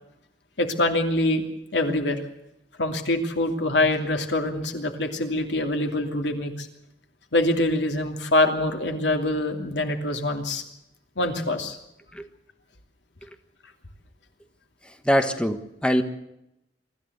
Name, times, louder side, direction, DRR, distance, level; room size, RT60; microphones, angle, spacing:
voice 1, 0.6-1.4 1.7-2.2 2.8-6.7 7.3-10.6 11.2-11.8, left 2 dB, 85° left, 5 dB, 2.9 m, -24 dB
voice 2, 15.0-16.0, equal, 5° left, 8 dB, 1.3 m, -23 dB
24.5 x 14.0 x 8.1 m, 0.84 s
head